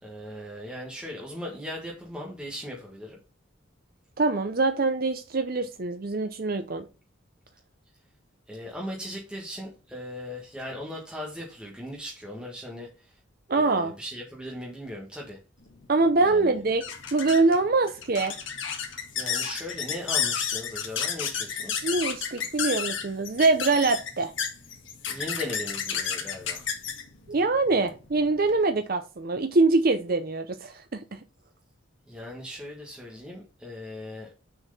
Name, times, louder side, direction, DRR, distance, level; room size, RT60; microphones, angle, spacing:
voice 1, 0.0-3.2 8.5-13.1 13.5-15.4 16.2-16.5 19.1-21.9 25.1-26.7 32.1-34.3, left 1 dB, 5° right, 1.5 m, -38 dB
voice 2, 4.2-6.9 13.5-13.9 15.9-16.8 17.1-18.4 21.8-24.3 27.3-31.2, right 3 dB, 45° right, 0.6 m, -24 dB
sound 1, 15.7-28.6, left 7 dB, 65° left, 1.7 m, -32 dB
6.6 x 4.7 x 5.5 m
head